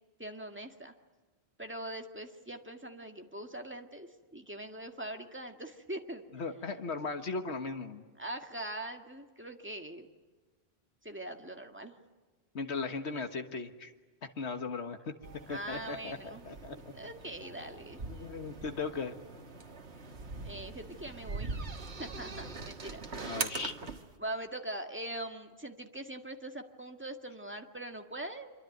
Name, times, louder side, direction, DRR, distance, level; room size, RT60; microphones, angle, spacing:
voice 1, 0.2-0.9 1.6-6.3 8.2-10.1 11.0-11.9 15.5-16.4 16.9-18.0 20.4-21.5 22.0-23.6 24.2-28.5, right 1 dB, 10° right, 4 dB, 1.9 m, -42 dB
voice 2, 6.3-8.0 12.5-13.9 14.4-15.2 15.5-16.9 18.1-19.2 23.2-23.7, left 4 dB, 85° left, 6 dB, 1.7 m, -37 dB
sound 1, 15.2-24.1, right 3 dB, 85° right, 2.0 m, -42 dB
25.5 x 24.5 x 9.2 m, 1.3 s
omnidirectional pair, 1.1 m